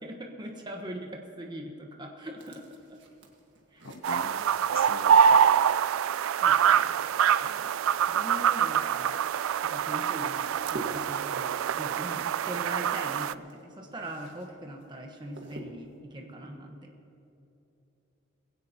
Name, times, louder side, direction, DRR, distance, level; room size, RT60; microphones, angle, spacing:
voice 1, 0.0-2.6 3.7-3.9 6.4-7.0 7.5-7.7 8.1-9.2 9.6-16.9, right 1 dB, 20° right, 1.3 m, -41 dB
sound 1, 2.4-5.2 6.2-14.5 14.8-16.0, right 1 dB, 60° right, 1.8 m, -48 dB
voice 2, 3.8-4.4 4.7-5.7, left 4 dB, 70° left, 0.7 m, -42 dB
sound 2, 4.0-13.3, right 8 dB, 85° right, 0.3 m, -25 dB
21.5 x 16.5 x 2.9 m
head